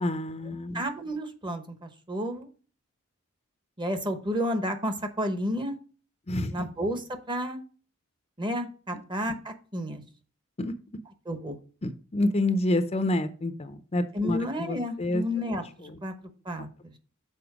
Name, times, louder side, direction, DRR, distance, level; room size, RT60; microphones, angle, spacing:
voice 1, 0.0-0.8 6.3-6.5 10.6-10.7 11.8-15.2, left 1 dB, 30° left, 10 dB, 0.5 m, -28 dB
voice 2, 0.7-2.5 3.8-5.8 6.5-7.6 8.4-10.0 11.3-11.6 14.1-16.9, equal, 20° right, 8 dB, 0.9 m, -31 dB
6.9 x 4.3 x 4.7 m, 0.39 s
head